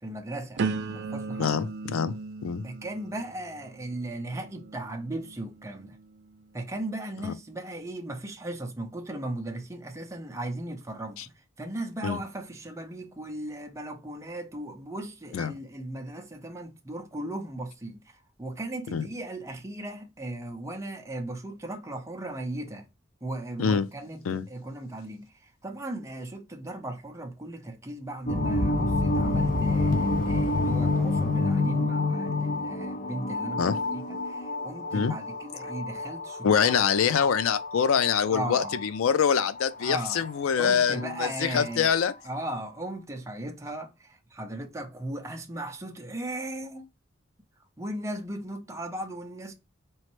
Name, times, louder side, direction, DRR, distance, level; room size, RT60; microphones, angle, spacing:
voice 1, 0.0-1.6 2.6-6.0 6.5-11.3 11.6-22.9 23.2-36.7 38.3-38.8 39.8-40.2 40.5-42.0 42.2-46.9 47.8-49.5, right 1 dB, 15° right, 0.6 m, -37 dB
sound 1, 0.6-6.4 7.0-7.4, right 4 dB, 60° right, 0.4 m, -37 dB
voice 2, 1.4-2.2 2.4-2.6 7.2-7.3 11.2-11.3 12.0-12.2 15.3-15.5 18.9-19.1 23.6-23.9 24.3-24.4 33.6-33.8 34.9-35.2 36.4-42.1, left 7 dB, 85° left, 0.4 m, -25 dB
sound 2, 28.3-41.7, left 2 dB, 45° left, 0.7 m, -28 dB
4.0 x 3.1 x 3.0 m
head